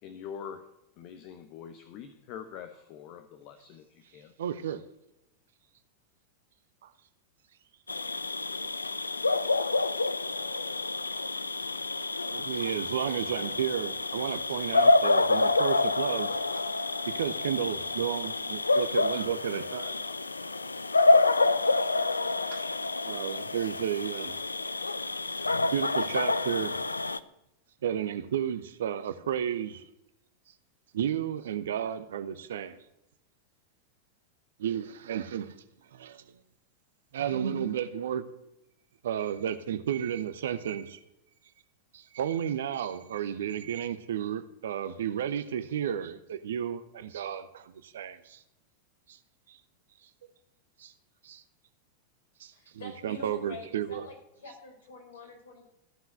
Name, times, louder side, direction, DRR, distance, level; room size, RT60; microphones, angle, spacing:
voice 1, 0.0-0.6 1.0-4.3, left 8 dB, 40° left, 0.9 m, -44 dB
voice 2, 4.4-4.8 6.8-6.9 12.3-16.3 17.1-19.9 22.5-22.6 23.0-24.4 25.7-26.8 27.8-29.8 30.9-32.8 34.6-35.5 35.9-36.2 37.1-38.3 39.0-41.0 41.9-48.4 49.1-49.2 49.5-49.6 50.8-50.9 51.2-51.4 52.4-52.5 52.8-54.1, right 9 dB, 60° right, 0.7 m, -32 dB
sound 1, 7.9-27.2, left 3 dB, 80° left, 0.4 m, -28 dB
voice 3, 52.5-55.6, left 2 dB, 65° left, 4.4 m, -46 dB
14.5 x 5.7 x 7.7 m
figure-of-eight pair, 90°, 0 cm